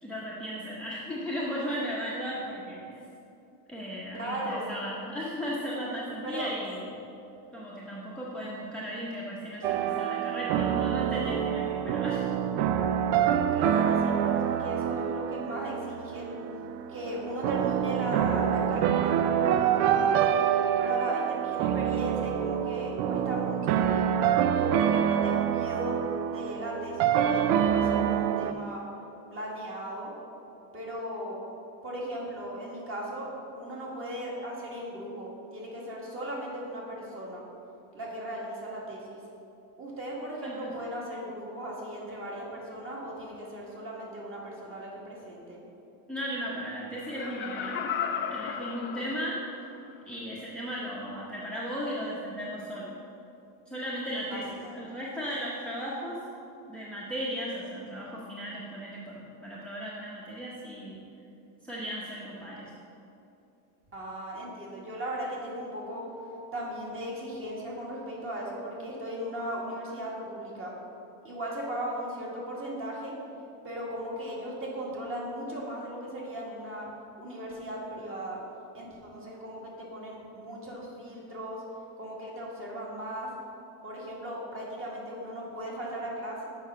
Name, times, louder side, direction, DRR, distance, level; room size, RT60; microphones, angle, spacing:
voice 1, 0.0-3.0 3.7-6.9 7.5-12.3 40.4-40.7 46.1-47.8 48.3-49.4 50.1-52.9 53.7-54.4 54.7-56.2 56.6-61.0 61.6-62.7, equal, ahead, -7 dB, 0.8 m, -36 dB
voice 2, 4.1-4.7 6.3-6.5 13.5-16.3 16.9-20.3 20.8-24.1 24.5-26.0 26.3-28.8 29.3-30.1 30.7-31.4 31.8-37.4 37.9-39.2 39.8-45.6 54.3-54.9 63.9-66.1 66.5-70.7 71.2-73.1 73.6-76.9 77.2-78.4 78.7-81.6 82.0-83.3 83.8-86.5, equal, 30° right, -4 dB, 1.8 m, -37 dB
sound 1, 9.6-28.5, right 9 dB, 75° right, 0.5 m, -26 dB
Laughter, 47.0-49.7 50.1-50.2, left 7 dB, 30° left, 0.4 m, -34 dB
7.1 x 5.1 x 5.5 m, 2.8 s
cardioid pair, 140°, 42 cm